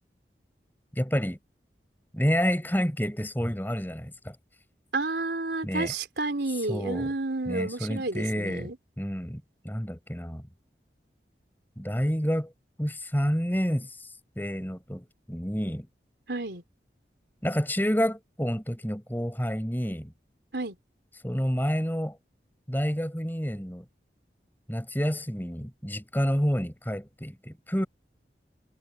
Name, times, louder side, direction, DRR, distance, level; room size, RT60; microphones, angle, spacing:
voice 1, 0.9-1.4 2.1-4.4 5.6-5.9 6.7-7.1 7.5-10.4 11.8-12.5 12.8-15.9 17.4-20.1 21.2-22.2 22.7-23.8 24.7-27.9, equal, 10° left, 6.1 m, -29 dB
voice 2, 4.9-8.8 16.3-16.6 20.5-20.8, right 2 dB, 80° right, 3.6 m, -31 dB
head